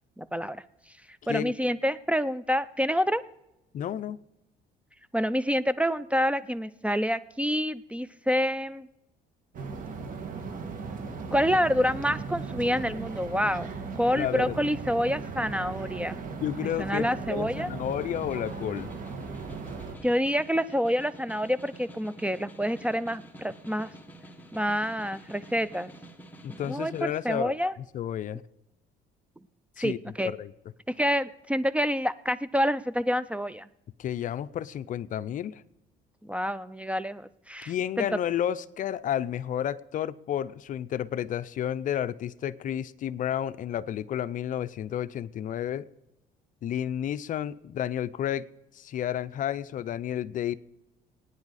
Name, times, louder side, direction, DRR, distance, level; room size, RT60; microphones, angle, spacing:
voice 1, 0.2-0.6 1.3-3.2 5.1-8.9 11.3-16.2 16.6-17.7 20.0-23.9 24.5-25.9 26.7-27.7 29.8-30.3 31.0-33.7 36.3-38.1, equal, 5° right, 16 dB, 0.4 m, -27 dB
voice 2, 3.7-4.2 14.1-14.6 16.4-18.9 26.4-27.5 27.9-28.4 29.8-30.0 30.2-30.5 34.0-35.6 37.7-45.9 46.6-48.5 48.7-50.5, left 10 dB, 50° left, 16 dB, 0.5 m, -31 dB
sound 1, 9.5-19.9, right 4 dB, 55° right, 2.0 m, -37 dB
Snare drum, 17.5-27.1, right 1 dB, 10° left, 1.5 m, -48 dB
20.0 x 9.6 x 4.1 m, 0.89 s
cardioid pair, 110°, 17 cm